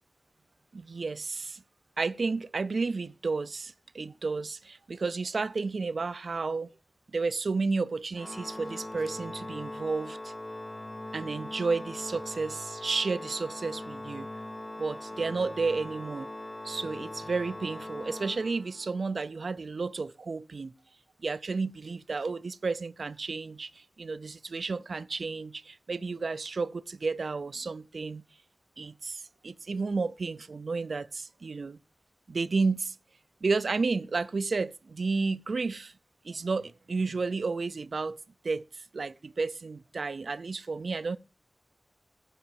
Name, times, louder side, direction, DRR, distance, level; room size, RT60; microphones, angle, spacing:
voice 1, 0.7-1.6 2.0-6.7 7.1-10.3 11.1-14.3 14.8-16.3 16.6-20.7 21.2-28.2 28.8-31.8 32.3-33.0 33.4-35.9 36.2-38.2 38.4-41.2, right 4 dB, 85° right, 0.4 m, -32 dB
Organ, 8.1-19.0, left 1 dB, 35° left, 0.6 m, -41 dB
9.9 x 5.9 x 7.5 m
wide cardioid pair, 75°, 0 cm